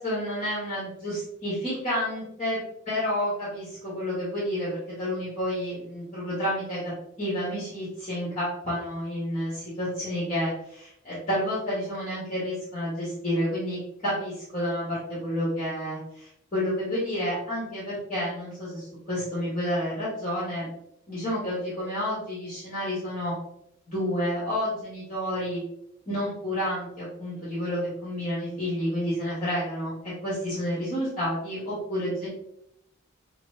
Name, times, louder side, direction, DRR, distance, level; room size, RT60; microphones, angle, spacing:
voice 1, 0.0-2.6 2.8-6.8 7.2-20.7 21.1-23.3 23.9-25.6 26.0-29.9 30.2-32.3, equal, 35° left, -9 dB, 1.4 m, -30 dB
5.7 x 2.1 x 2.6 m, 0.78 s
head